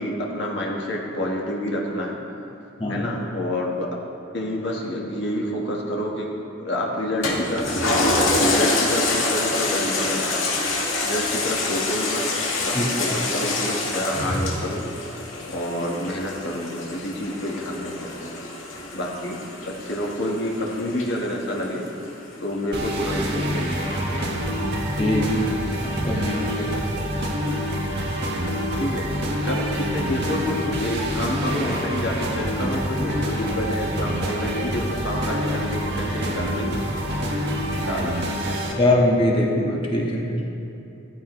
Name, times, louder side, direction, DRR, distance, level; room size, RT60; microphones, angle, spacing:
voice 1, 0.0-2.2 2.9-3.9 4.3-6.3 6.6-10.4 11.0-12.3 12.6-14.8 15.5-18.3 18.9-19.4 19.6-21.8 22.4-24.3 28.8-29.1 29.4-36.8 37.8-38.2, left 1 dB, 55° left, -2 dB, 1.6 m, -28 dB
voice 2, 2.8-3.1 12.7-12.8 25.0-25.4 26.0-26.7 38.7-40.4, left 1 dB, 25° left, -2 dB, 1.7 m, -22 dB
Toilet flush, 7.2-22.0 22.5-22.6, left 2 dB, 70° left, 2.1 m, -26 dB
sound 1, 22.7-38.7, equal, 50° right, 1.8 m, -26 dB
15.5 x 14.0 x 3.2 m, 2.8 s
head